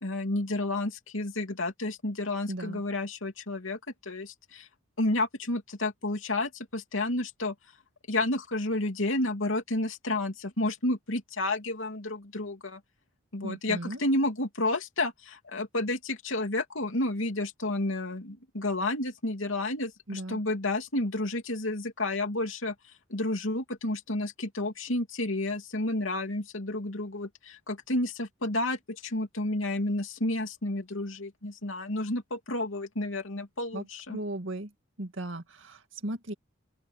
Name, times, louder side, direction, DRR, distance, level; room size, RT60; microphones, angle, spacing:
voice 1, 0.0-4.7 5.0-7.5 8.1-12.8 13.3-22.7 23.1-34.2, left 2 dB, 85° left, 2.9 m, -31 dB
voice 2, 2.5-2.8 13.4-14.0 20.1-20.4 33.7-34.7 35.0-36.3, right 1 dB, 70° right, 2.2 m, -36 dB
open air
head